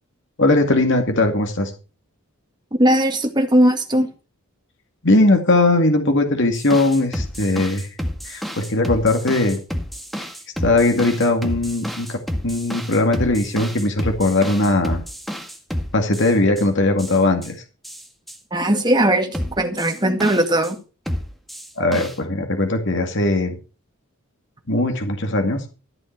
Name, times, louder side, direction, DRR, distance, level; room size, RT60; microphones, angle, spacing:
voice 1, 0.4-1.7 5.0-7.9 8.2-9.6 10.2-10.3 10.6-12.2 12.4-15.0 15.9-17.6 21.8-23.6 24.7-25.6, left 2 dB, 55° left, 4 dB, 2.2 m, -19 dB
voice 2, 2.8-4.1 18.5-20.8, right 1 dB, 20° right, 5 dB, 2.0 m, -18 dB
sound 1, 6.5-16.6 17.0-17.5 17.8-18.4 19.3-20.7 21.1-22.1, equal, ahead, 1.8 m, -30 dB
14.0 x 8.1 x 5.9 m, 0.34 s
head